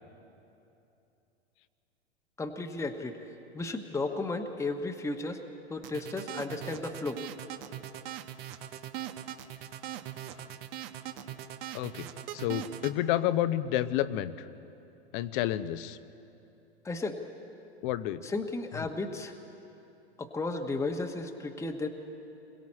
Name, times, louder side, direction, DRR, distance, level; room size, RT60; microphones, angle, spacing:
voice 1, 2.4-3.2 3.5-5.4 5.7-7.2 16.8-17.2 18.2-19.4 20.2-21.9, left 3 dB, 10° left, 4 dB, 1.1 m, -34 dB
sound 1, 5.8-12.9, right 12 dB, 60° right, 1.2 m, -40 dB
voice 2, 11.7-12.1 12.3-14.5 15.1-16.0 17.8-18.2, left 13 dB, 50° left, 13 dB, 0.9 m, -30 dB
27.5 x 22.0 x 4.3 m, 2.8 s
hypercardioid pair, 105°, 32 cm